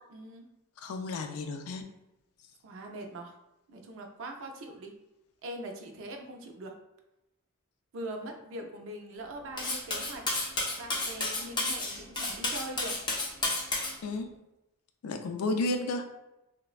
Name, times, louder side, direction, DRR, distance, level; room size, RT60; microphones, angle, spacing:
voice 1, 0.1-0.5 2.6-3.3 3.7-5.0 5.4-6.8 7.9-10.3 10.8-13.0, right 1 dB, 60° right, 4 dB, 0.4 m, -42 dB
voice 2, 0.8-1.8 14.0-14.3 15.0-16.1, left 2 dB, 85° left, 5 dB, 0.4 m, -32 dB
Cutlery silverware, 9.6-13.9, left 2 dB, 20° left, 0.4 m, -31 dB
3.2 x 2.1 x 2.3 m, 0.92 s
head